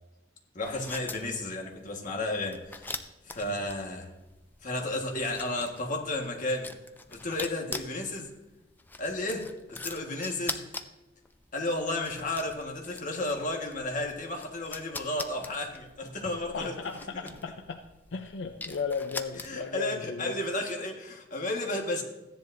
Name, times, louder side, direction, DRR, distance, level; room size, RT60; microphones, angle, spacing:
voice 1, 0.5-3.0 3.2-4.1 4.6-6.7 7.1-8.3 9.0-10.8 11.5-16.7 17.1-17.3 19.4-22.0, left 2 dB, 45° left, 2 dB, 1.5 m, -33 dB
sound 1, 0.6-19.8, left 3 dB, 10° left, 0.4 m, -43 dB
voice 2, 16.5-17.8 18.1-20.4, left 5 dB, 75° left, 5 dB, 0.5 m, -35 dB
15.0 x 10.5 x 2.6 m, 1.0 s
head